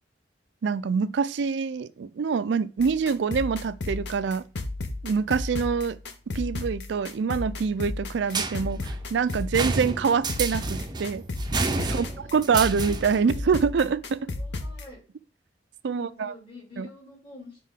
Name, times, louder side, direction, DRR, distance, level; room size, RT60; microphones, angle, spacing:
voice 1, 0.6-4.4 5.0-6.0 6.3-8.8 9.1-11.2 11.8-14.3 15.8-16.3 16.8-16.9, right 5 dB, 75° right, 0.4 m, -25 dB
sound 1, 2.8-14.9, left 2 dB, 65° left, 0.8 m, -34 dB
sound 2, 8.3-13.3, right 3 dB, 25° right, 0.6 m, -30 dB
voice 2, 11.8-12.6 14.3-15.0 15.9-17.6, left 3 dB, 30° left, 2.6 m, -47 dB
7.5 x 3.7 x 3.6 m
head